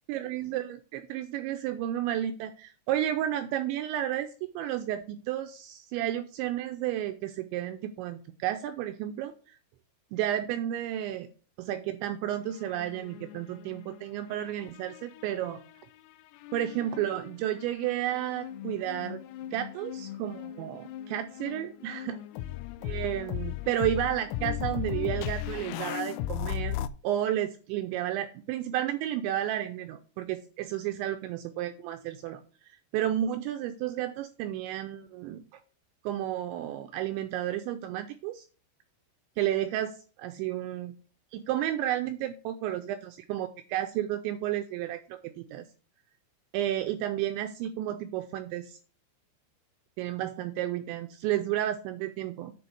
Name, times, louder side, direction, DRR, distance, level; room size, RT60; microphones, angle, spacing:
voice 1, 0.1-4.3 4.5-9.6 10.1-11.3 11.6-15.6 16.5-19.2 19.5-22.2 22.9-26.8 27.0-32.4 32.7-35.4 36.0-38.5 39.4-41.0 41.3-45.7 46.5-48.8 50.0-52.5, right 12 dB, 85° right, 8 dB, 2.6 m, -32 dB
sound 1, 12.4-14.0 14.3-15.7 16.4-26.9, left 12 dB, 85° left, 3.2 m, -37 dB
10.0 x 4.3 x 6.3 m, 0.38 s
omnidirectional pair, 5.8 m